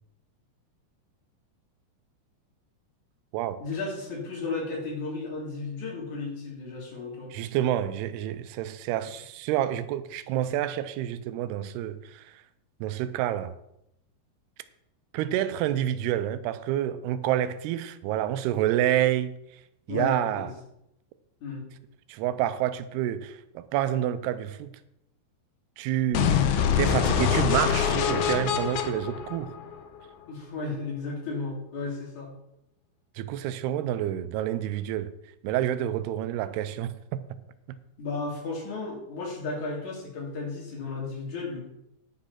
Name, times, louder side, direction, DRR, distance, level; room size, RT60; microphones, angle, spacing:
voice 1, 3.6-7.3 19.9-20.5 21.4-21.6 30.3-32.3 38.0-41.6, left 3 dB, 50° left, 3.8 m, -34 dB
voice 2, 7.3-12.4 12.8-13.6 15.1-19.3 19.9-20.5 22.1-24.7 25.8-26.4 26.8-29.5 33.2-35.1 35.4-37.2, right 12 dB, 85° right, 2.6 m, -28 dB
sound 1, 26.1-30.1, left 8 dB, 85° left, 1.7 m, -25 dB
10.5 x 6.6 x 5.7 m
omnidirectional pair, 4.6 m